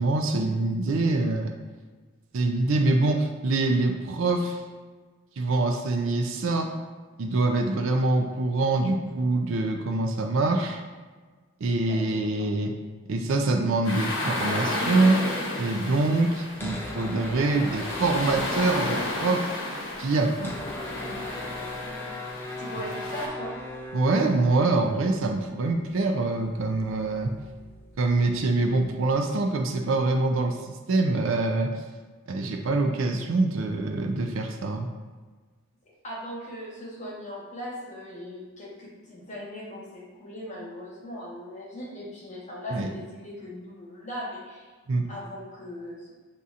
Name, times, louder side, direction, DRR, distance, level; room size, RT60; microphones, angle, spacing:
voice 1, 0.0-1.5 2.3-4.6 5.4-6.7 7.2-10.8 11.6-12.7 13.1-15.2 15.6-19.5 20.0-20.5 23.9-27.3 28.0-30.6 30.9-31.7 32.3-34.9 42.7-42.9 44.9-45.0, right 2 dB, 60° right, 4 dB, 0.4 m, -25 dB
sound 1, 13.8-23.3, left 1 dB, 60° left, 0.9 m, -32 dB
sound 2, 16.5-19.2 19.5-19.6 19.7-29.2, left 2 dB, 10° left, 0.3 m, -40 dB
voice 2, 21.8-22.1 22.6-23.5 36.0-44.7 45.1-46.1, left 1 dB, 30° left, -6 dB, 1.1 m, -39 dB
6.8 x 2.7 x 2.5 m, 1.4 s
head